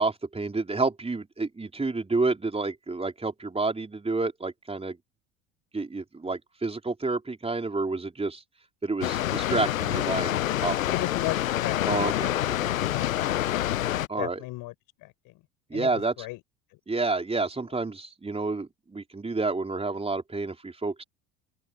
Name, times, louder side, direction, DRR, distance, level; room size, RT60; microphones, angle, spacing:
voice 1, 0.0-5.0 5.7-8.4 8.8-10.7 11.8-12.7 14.1-14.4 15.7-16.1 16.9-21.0, right 3 dB, 15° right, 4.5 m, -29 dB
Water, 9.0-14.1, left 13 dB, 85° left, 0.7 m, -27 dB
voice 2, 10.9-12.4 12.9-14.7 15.0-15.3 15.7-16.4, left 20 dB, 60° left, 6.9 m, -36 dB
open air
hypercardioid pair, 70°, 40 cm